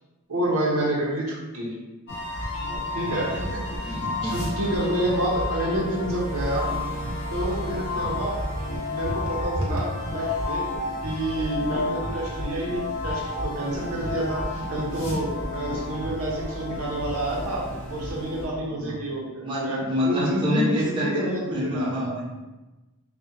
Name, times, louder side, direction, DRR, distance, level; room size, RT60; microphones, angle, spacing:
voice 1, 0.3-1.8 2.5-2.7 2.9-3.9 4.2-6.7 7.3-8.5 8.9-10.7 11.0-22.2, right 1 dB, 90° right, -3 dB, 0.7 m, -28 dB
sound 1, 2.1-18.5, left 2 dB, 65° left, 0.7 m, -31 dB
voice 2, 3.1-3.5 3.9-4.4 7.9-8.2 18.8-18.9 19.4-22.3, left 1 dB, 25° right, -7 dB, 0.7 m, -28 dB
2.5 x 2.1 x 2.5 m, 1.1 s
head